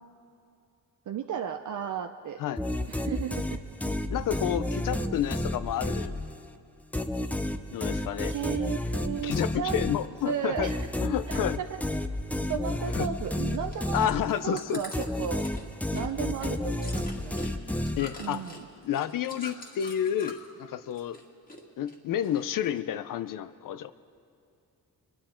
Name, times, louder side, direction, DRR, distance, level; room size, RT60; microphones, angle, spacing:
voice 1, 1.1-2.4 2.9-3.6 4.9-5.1 8.3-9.8 10.3-10.9 11.3-11.7 12.5-14.1 14.4-15.4 15.9-17.5 18.2-18.7, right 8 dB, 55° right, 5 dB, 0.6 m, -34 dB
sound 1, 2.6-6.5 6.9-14.6 14.9-18.4, left 1 dB, 5° left, 0.5 m, -31 dB
voice 2, 4.1-6.1 7.7-8.3 9.2-10.7 11.0-11.6 12.9-13.1 13.9-14.8 18.0-18.4 18.8-21.2 21.8-23.9, left 10 dB, 65° left, 14 dB, 0.6 m, -30 dB
Chewing mastication, 13.5-20.6 20.9-21.6 21.9-22.8 23.3-23.4, left 1 dB, 25° left, 2.0 m, -45 dB
23.0 x 10.5 x 4.4 m, 2.6 s
cardioid pair, 110°, 35 cm